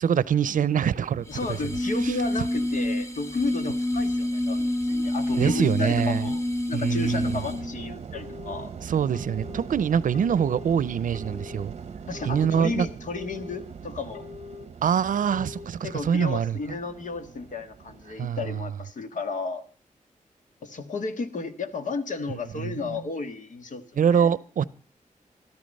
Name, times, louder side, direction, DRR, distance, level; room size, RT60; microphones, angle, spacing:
voice 1, 0.0-1.3 2.0-2.1 5.4-6.3 6.7-7.4 8.8-11.7 12.3-12.9 14.8-16.6 18.2-18.4 22.6-23.0 24.0-24.6, right 8 dB, 80° right, 20 dB, 0.6 m, -24 dB
voice 2, 1.3-6.4 6.7-8.7 12.1-14.2 15.8-19.6 20.6-24.3, left 3 dB, 70° left, 9 dB, 1.6 m, -33 dB
sound 1, 1.3-7.8, left 1 dB, 20° left, 1.2 m, -28 dB
sound 2, 7.0-18.3, right 6 dB, 50° right, 0.9 m, -41 dB
Telephone, 8.1-8.7 9.1-9.7 10.1-10.7 11.1-11.7 12.1-12.7 13.1-13.7 14.1-14.7 15.1-15.7, left 6 dB, 85° left, 3.6 m, -43 dB
14.0 x 13.0 x 5.3 m, 0.41 s
wide cardioid pair, 170°, 14 cm